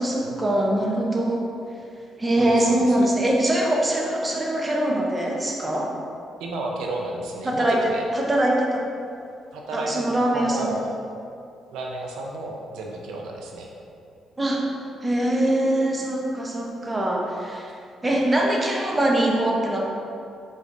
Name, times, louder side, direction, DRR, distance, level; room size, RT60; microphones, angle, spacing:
voice 1, 0.0-1.4 2.2-5.9 7.4-8.8 9.7-10.8 14.4-14.7 15.0-17.7 18.0-19.8, right 1 dB, 20° right, -1 dB, 0.7 m, -23 dB
voice 2, 2.4-3.1 6.4-8.0 9.5-9.9 10.3-10.8 11.7-13.7, right 2 dB, 90° right, 0 dB, 0.5 m, -32 dB
4.8 x 4.0 x 2.6 m, 2.5 s
cardioid pair, 90°, 0 cm